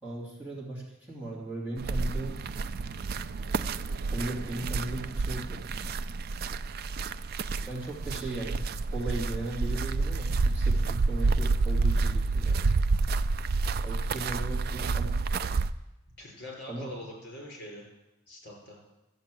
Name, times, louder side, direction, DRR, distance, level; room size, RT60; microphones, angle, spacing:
voice 1, 0.0-2.4 4.1-5.6 7.6-12.7 13.8-15.1 16.7-16.9, right 1 dB, 10° right, -7 dB, 2.7 m, -37 dB
sound 1, 1.8-15.7, right 3 dB, 45° right, 0.3 m, -29 dB
voice 2, 16.2-17.9 18.3-18.8, left 1 dB, 50° left, -1 dB, 5.2 m, -44 dB
14.0 x 8.0 x 7.6 m, 0.99 s
head